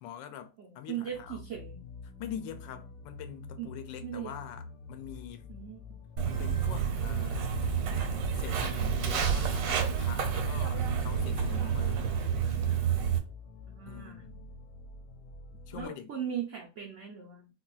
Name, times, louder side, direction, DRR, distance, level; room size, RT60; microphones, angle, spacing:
voice 1, 0.0-1.4 2.2-5.5 6.2-7.5 8.3-12.1 13.9-14.6 15.7-16.1, left 9 dB, 90° left, 1.2 m, -44 dB
voice 2, 0.6-1.8 3.6-3.7 4.0-4.3 5.5-5.8 13.7-14.2 15.7-17.5, right 9 dB, 60° right, 0.8 m, -39 dB
sound 1, 1.1-15.9, left 4 dB, 70° left, 0.9 m, -47 dB
Walk footsteps, 6.2-13.2, right 7 dB, 85° right, 1.3 m, -29 dB
3.8 x 2.3 x 2.3 m
omnidirectional pair, 1.9 m